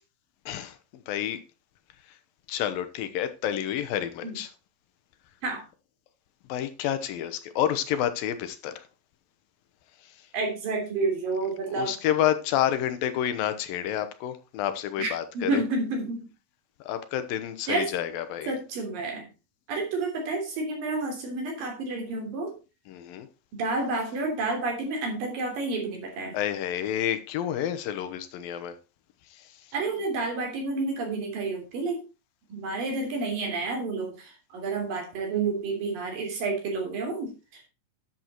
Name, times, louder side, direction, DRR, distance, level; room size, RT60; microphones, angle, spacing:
voice 1, 0.5-1.4 2.5-4.5 6.5-8.9 10.0-10.2 11.7-15.6 16.8-18.6 22.9-23.3 26.3-28.8 29.3-29.6, left 10 dB, 85° left, 2.8 m, -29 dB
voice 2, 10.3-11.9 15.0-15.1 15.3-16.3 17.7-17.9 18.5-19.3 19.7-22.5 23.5-26.4 29.7-32.0 32.5-37.7, right 3 dB, 75° right, 5.1 m, -30 dB
11.0 x 7.5 x 4.5 m
omnidirectional pair, 4.0 m